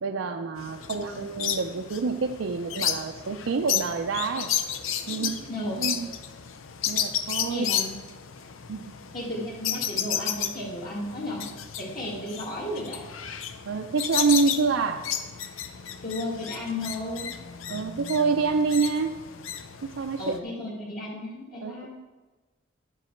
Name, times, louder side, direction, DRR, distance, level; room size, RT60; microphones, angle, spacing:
voice 1, 0.0-4.5 5.1-5.3 5.8-6.1 6.9-7.7 8.7-8.9 13.7-15.1 17.7-19.2 19.8-20.4 21.6-21.9, right 4 dB, 75° right, 4 dB, 0.5 m, -27 dB
sound 1, 0.6-20.4, left 9 dB, 85° left, 0.6 m, -33 dB
voice 2, 0.9-1.2 5.1-5.8 7.5-8.0 9.1-11.5 11.8-13.0 16.0-17.3 20.2-21.9, left 1 dB, 45° left, -7 dB, 1.7 m, -34 dB
11.0 x 7.8 x 4.5 m, 1.3 s
head